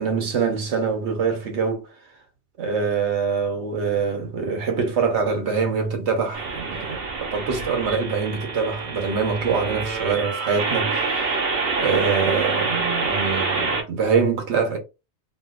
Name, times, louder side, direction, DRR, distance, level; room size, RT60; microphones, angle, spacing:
voice 1, 0.0-1.9 2.6-11.3 11.8-14.8, right 5 dB, 80° right, 1.2 m, -24 dB
sound 1, 6.3-13.8, right 4 dB, 60° right, 1.1 m, -26 dB
3.1 x 2.7 x 2.3 m
omnidirectional pair, 1.1 m